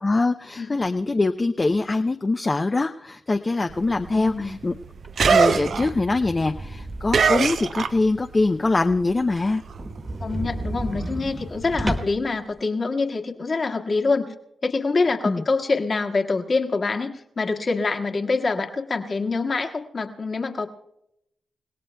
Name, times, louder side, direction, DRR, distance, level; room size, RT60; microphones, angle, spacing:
voice 1, 0.0-4.7 5.2-9.6 11.8-11.9 15.2-15.4, left 3 dB, 35° left, 6 dB, 0.5 m, -23 dB
sound 1, 3.7-8.4 8.7-12.0, right 6 dB, 70° right, 0.6 m, -25 dB
voice 2, 4.1-4.6 10.2-14.3 14.6-20.7, left 3 dB, 50° left, 4 dB, 1.6 m, -25 dB
sound 2, 5.0-7.6 8.0-8.1 8.5-8.6 8.9-9.0 9.3-9.4 9.7-12.3, right 1 dB, 25° right, 1.4 m, -32 dB
29.0 x 17.5 x 2.3 m, 0.81 s
cardioid pair, 65°, 0 cm